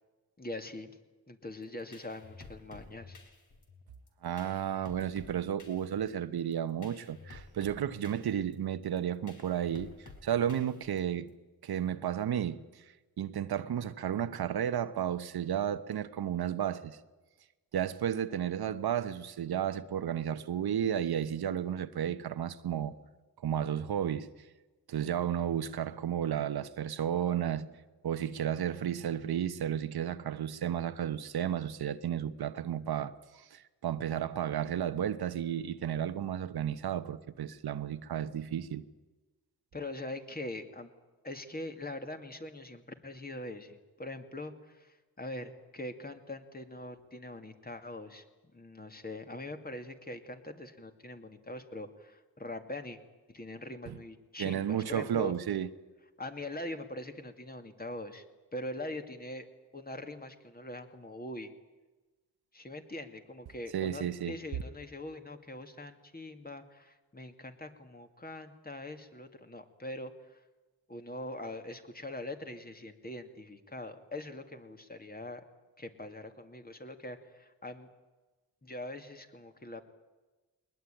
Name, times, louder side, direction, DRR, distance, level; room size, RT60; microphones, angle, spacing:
voice 1, 0.4-1.0 1.3-3.2 39.7-40.9 41.2-48.2 48.5-53.0 53.3-55.3 56.2-58.2 58.5-59.5 59.7-61.5 62.5-70.4 70.9-75.4 75.8-77.9 78.6-79.8, left 1 dB, 25° left, 2.4 m, -42 dB
sound 1, 1.6-11.3, left 3 dB, 55° left, 4.1 m, -53 dB
voice 2, 4.2-11.3 11.6-12.8 13.2-17.0 17.7-22.9 23.4-24.3 24.9-27.7 28.0-38.8 53.9-54.0 54.4-55.7 63.7-64.4, right 9 dB, 80° right, 1.1 m, -33 dB
21.0 x 20.5 x 9.1 m
cardioid pair, 85°, 38 cm